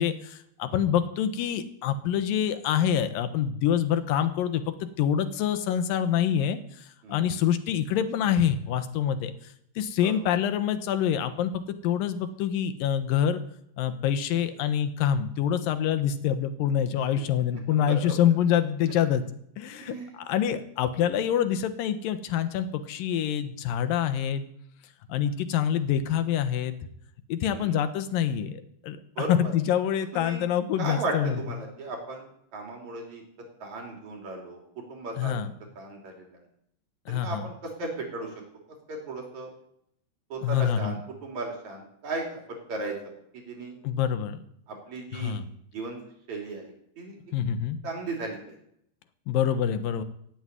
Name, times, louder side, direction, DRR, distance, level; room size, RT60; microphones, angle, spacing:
voice 1, 0.0-9.3 9.8-13.4 13.8-19.2 19.6-24.5 25.1-26.8 27.3-31.4 35.2-35.5 37.1-37.5 40.4-41.0 43.8-44.4 45.1-45.5 47.3-47.8 49.3-50.0, left 9 dB, 70° left, 10 dB, 2.7 m, -26 dB
voice 2, 17.7-18.1 19.8-20.2 27.5-27.8 29.2-29.5 30.1-30.4 30.8-32.3 32.5-33.2 33.6-35.4 35.8-36.3 37.1-38.3 38.9-39.5 40.3-42.9 43.3-43.8 44.7-45.4 45.7-46.0 46.3-47.2 47.8-48.5, right 2 dB, 50° right, 1 dB, 4.4 m, -36 dB
16.0 x 8.1 x 9.4 m, 0.73 s
omnidirectional pair, 4.4 m